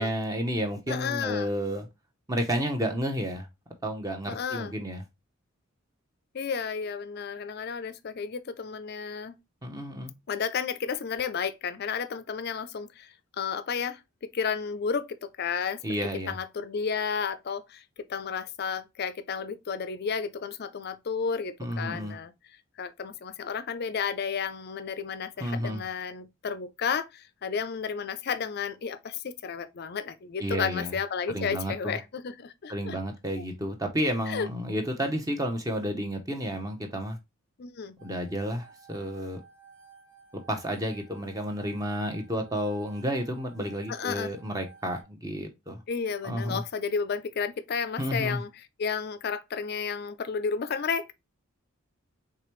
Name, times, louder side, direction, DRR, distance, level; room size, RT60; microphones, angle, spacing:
voice 1, 0.0-1.9 2.3-3.5 3.8-5.0 9.6-10.1 15.8-16.3 21.6-22.2 25.4-25.8 30.4-30.9 31.3-32.0 32.7-37.2 38.0-39.4 40.3-45.8 46.2-46.6 48.0-48.4, equal, 15° right, 0.7 m, -31 dB
voice 2, 0.9-1.5 4.3-4.7 6.3-9.3 10.3-15.8 16.3-17.8 18.1-22.3 22.8-33.0 33.4-33.5 34.3-34.5 37.6-38.0 43.9-44.3 45.9-48.5 48.8-51.1, left 6 dB, 45° left, 0.4 m, -32 dB
sound 1, 38.0-45.0, right 6 dB, 65° right, 1.5 m, -54 dB
4.9 x 3.3 x 3.1 m
head